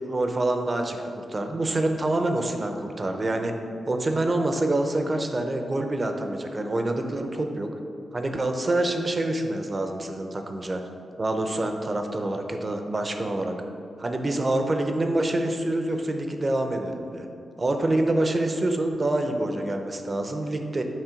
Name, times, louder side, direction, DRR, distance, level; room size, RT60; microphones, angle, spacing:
voice 1, 0.1-3.5 3.9-7.7 8.1-10.8 11.2-13.6 14.0-17.3 17.6-20.8, right 2 dB, 30° right, 5 dB, 0.5 m, -26 dB
7.3 x 3.1 x 5.0 m, 2.5 s
wide cardioid pair, 120°, 0 cm